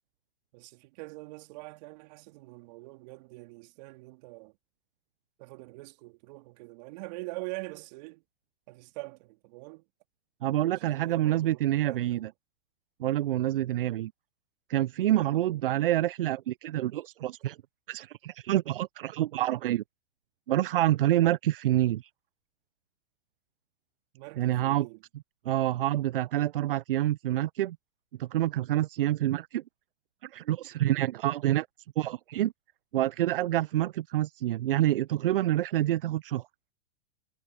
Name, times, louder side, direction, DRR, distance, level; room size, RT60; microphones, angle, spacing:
voice 1, 0.5-4.6 5.4-8.2 8.7-9.8 10.6-12.3 15.1-15.6 24.1-25.0, right 25 dB, 45° right, 3.2 m, -44 dB
voice 2, 10.4-12.3 13.0-14.1 14.7-17.6 17.9-19.8 20.5-22.1 24.4-24.9 25.5-27.8 28.2-29.6 30.2-31.7 32.0-32.5 32.9-36.4, right 14 dB, 70° right, 0.4 m, -27 dB
hypercardioid pair, 115°, 29 cm